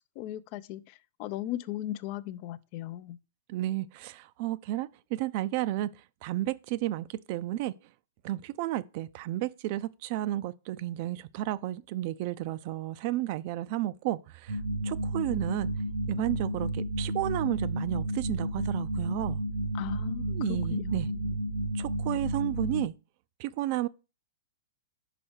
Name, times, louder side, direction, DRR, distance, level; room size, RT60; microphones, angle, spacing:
voice 1, 0.2-3.2 19.7-21.4, left 13 dB, 45° left, 0.4 m, -38 dB
voice 2, 3.5-5.9 6.2-7.7 8.2-15.7 16.1-19.4 20.3-21.1 21.7-22.9 23.4-23.9, right 15 dB, 50° right, 0.4 m, -32 dB
sound 1, 14.5-22.9, right 1 dB, 75° right, 0.8 m, -32 dB
5.3 x 5.0 x 4.5 m
hypercardioid pair, 125°, 0 cm